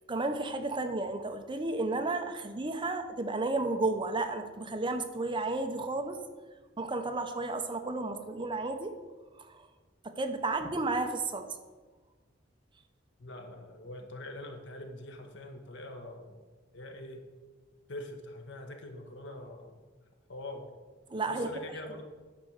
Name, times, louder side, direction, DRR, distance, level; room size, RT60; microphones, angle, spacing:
voice 1, 0.1-6.2 6.8-9.0 9.4-9.7 10.0-11.5 21.1-21.5, right 2 dB, 25° right, 7 dB, 0.7 m, -32 dB
voice 2, 13.2-16.4 16.7-17.3 17.9-19.8 20.3-20.7 21.3-22.0, left 1 dB, 70° left, 5 dB, 1.2 m, -43 dB
10.0 x 4.4 x 6.4 m, 1.4 s
head